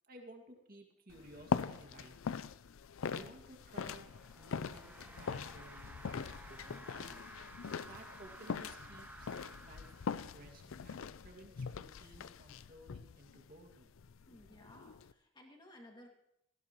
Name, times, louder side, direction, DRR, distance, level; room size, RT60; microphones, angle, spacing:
voice 1, 0.0-2.1 3.1-4.1 4.4-4.9 5.2-7.3 7.9-9.3 9.6-13.9, right 1 dB, 45° right, 2 dB, 2.1 m, -56 dB
sound 1, 1.1-15.1, left 6 dB, 80° left, 0.4 m, -42 dB
sound 2, 3.6-10.7, right 1 dB, 10° right, 0.9 m, -55 dB
sound 3, 4.5-10.9, equal, 60° right, 2.2 m, -70 dB
voice 2, 14.3-16.1, left 1 dB, 20° left, 1 dB, 2.2 m, -57 dB
18.5 x 15.5 x 3.1 m, 0.79 s
head